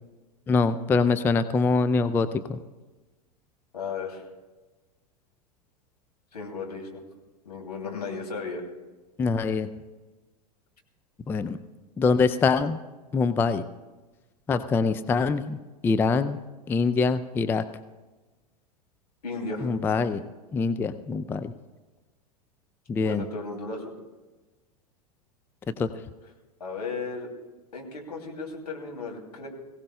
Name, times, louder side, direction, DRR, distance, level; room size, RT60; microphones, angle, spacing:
voice 1, 0.5-2.6 9.2-9.7 11.3-11.6 12.0-12.8 13.1-13.6 14.5-15.6 15.8-16.4 16.7-17.6 19.6-20.2 20.5-21.5 22.9-23.2 25.8-25.9, left 4 dB, 10° left, 12 dB, 0.4 m, -24 dB
voice 2, 3.7-4.2 6.3-7.1 7.4-8.6 19.2-19.7 23.0-23.9 26.6-27.3 27.7-29.5, left 4 dB, 75° left, 0 dB, 2.9 m, -35 dB
22.5 x 16.5 x 2.3 m, 1.2 s
figure-of-eight pair, 90°, 21 cm